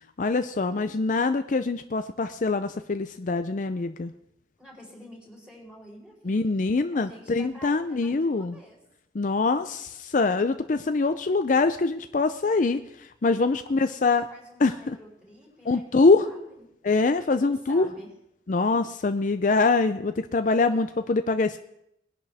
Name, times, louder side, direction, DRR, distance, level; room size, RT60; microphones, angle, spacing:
voice 1, 0.2-4.1 6.2-8.6 9.1-12.8 13.2-14.2 14.6-15.0 15.7-16.3 16.8-17.9 18.5-21.6, left 3 dB, 45° left, 9 dB, 0.5 m, -24 dB
voice 2, 4.6-6.5 6.9-8.8 13.6-16.6 17.4-18.1, equal, 5° right, -3 dB, 4.5 m, -49 dB
21.5 x 10.5 x 3.5 m, 0.78 s
head